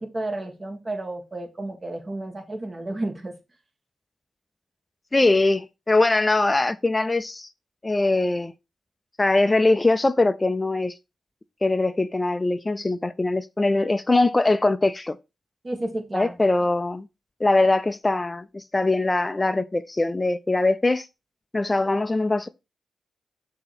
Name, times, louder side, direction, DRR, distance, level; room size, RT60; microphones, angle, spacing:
voice 1, 0.0-3.3 15.6-16.3, right 2 dB, 30° right, 1.7 m, -32 dB
voice 2, 5.1-7.5 7.8-8.5 9.2-10.9 11.6-15.2 16.1-17.1 17.4-21.1 21.5-22.5, left 2 dB, 20° left, 0.4 m, -22 dB
6.6 x 2.9 x 5.8 m
cardioid pair, 70°, 0 cm